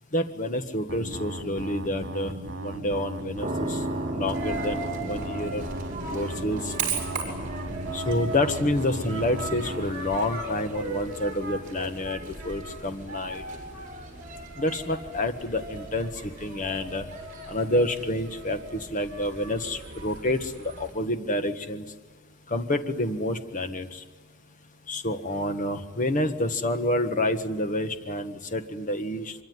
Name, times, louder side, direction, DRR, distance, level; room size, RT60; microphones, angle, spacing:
voice 1, 0.1-2.3 2.6-3.8 4.1-5.7 6.1-6.7 7.9-13.4 14.6-16.1 16.4-17.0 17.5-21.8 22.5-24.0 24.9-29.3, left 1 dB, 40° left, 8 dB, 1.6 m, -28 dB
sound 1, 0.9-9.9, right 1 dB, 70° right, 2.5 m, -37 dB
sound 2, 3.4-18.3, right 1 dB, 25° right, 3.0 m, -39 dB
Coin (dropping), 4.3-20.9, right 3 dB, 45° right, 6.3 m, -37 dB
25.0 x 23.5 x 9.6 m, 1.4 s
head